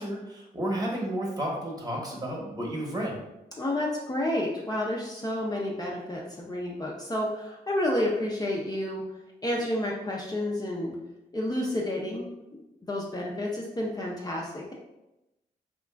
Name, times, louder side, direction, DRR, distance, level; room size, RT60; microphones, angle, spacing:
voice 1, 0.0-3.2, right 1 dB, 20° right, -2 dB, 0.9 m, -32 dB
voice 2, 3.6-9.0 9.4-11.0 11.3-12.3 12.8-14.7, left 1 dB, 20° left, -3 dB, 0.5 m, -30 dB
2.9 x 2.4 x 2.2 m, 0.93 s
supercardioid pair, 45°, 17 cm